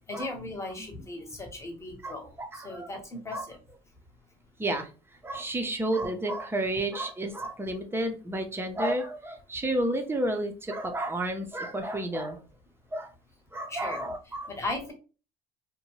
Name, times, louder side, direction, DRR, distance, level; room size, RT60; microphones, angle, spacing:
voice 1, 0.1-2.3 2.5-3.6 13.7-14.1 14.5-14.9, left 2 dB, 20° left, 2 dB, 1.0 m, -37 dB
voice 2, 2.4-2.9 3.3-3.4 4.6-4.9 5.2-12.4 12.9-13.1 13.5-14.6, right 1 dB, 15° right, 5 dB, 0.6 m, -31 dB
2.6 x 2.2 x 3.1 m, 0.34 s
cardioid pair, 100°, 16 cm